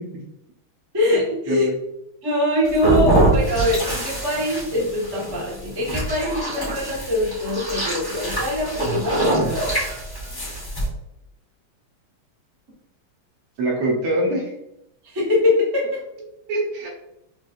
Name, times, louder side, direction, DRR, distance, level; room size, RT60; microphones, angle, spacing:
voice 1, 0.9-1.7 2.2-9.7 15.0-16.0, left 1 dB, 25° right, -5 dB, 0.5 m, -23 dB
sound 1, 2.6-10.9, right 2 dB, 25° left, 0.5 m, -24 dB
voice 2, 13.6-14.5 16.5-16.9, right 1 dB, 80° right, 0 dB, 1.8 m, -24 dB
5.1 x 2.4 x 2.5 m, 0.84 s
omnidirectional pair, 2.4 m